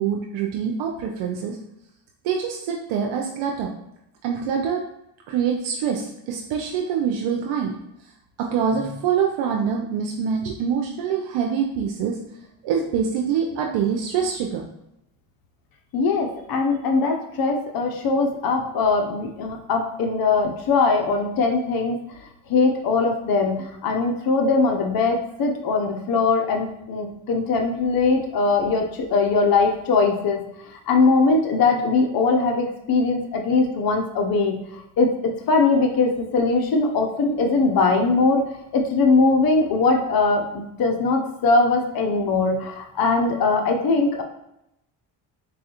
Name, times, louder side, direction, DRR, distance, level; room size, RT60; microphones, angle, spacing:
voice 1, 0.0-1.6 2.2-3.7 4.2-4.8 5.3-7.8 8.4-12.2 12.6-14.6, right 7 dB, 70° right, 1 dB, 0.6 m, -25 dB
voice 2, 15.9-22.0 22.5-30.4 30.9-34.6 35.0-35.1 35.5-38.4 38.7-44.2, left 3 dB, 45° left, 3 dB, 0.6 m, -21 dB
4.0 x 2.3 x 2.8 m, 0.83 s
supercardioid pair, 65°, 49 cm